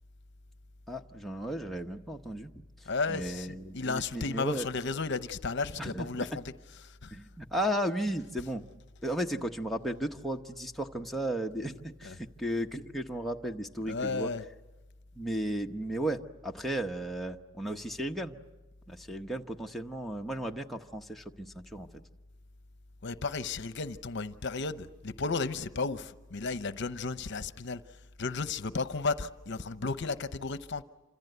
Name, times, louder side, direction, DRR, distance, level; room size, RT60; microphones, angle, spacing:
voice 1, 0.9-2.5 3.1-4.7 5.8-6.1 7.1-8.7 9.0-14.3 15.2-18.4 18.9-21.9, right 1 dB, ahead, 0.9 m, -35 dB
voice 2, 2.9-6.4 7.0-7.1 12.0-12.1 13.9-14.4 23.0-27.8 28.2-30.8, left 4 dB, 60° left, 0.8 m, -33 dB
28.0 x 26.0 x 8.0 m
head